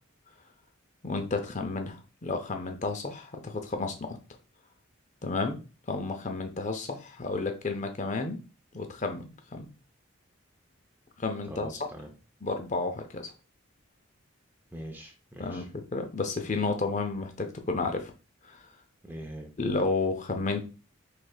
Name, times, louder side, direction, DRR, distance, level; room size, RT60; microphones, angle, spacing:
voice 1, 1.0-4.2 5.2-5.6 5.9-8.4 8.7-9.7 11.2-11.7 12.4-13.3 15.4-15.6 15.9-18.1 18.4-18.6 19.6-20.6, left 3 dB, 35° left, 6 dB, 0.6 m, -31 dB
voice 2, 11.5-12.1 14.7-15.7 19.0-19.5, right 1 dB, 10° right, 3 dB, 0.6 m, -42 dB
4.8 x 3.3 x 2.3 m, 0.32 s
head